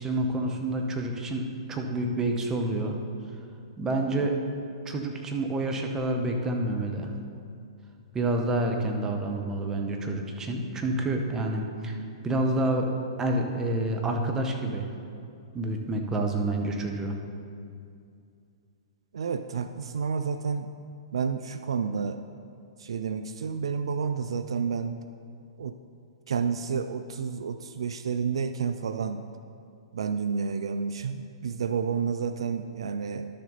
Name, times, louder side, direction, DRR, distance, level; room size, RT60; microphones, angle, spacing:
voice 1, 0.0-3.0 3.8-4.3 4.8-7.1 8.1-12.0 12.2-12.9 13.2-14.9 15.5-17.1, right 2 dB, 15° right, 2 dB, 1.1 m, -28 dB
voice 2, 19.1-20.7 21.1-22.2 22.8-24.9 25.6-25.8 26.3-29.2 29.9-33.3, right 6 dB, 70° right, 10 dB, 0.4 m, -30 dB
12.0 x 6.6 x 4.1 m, 2.4 s
figure-of-eight pair, 115°, 3 cm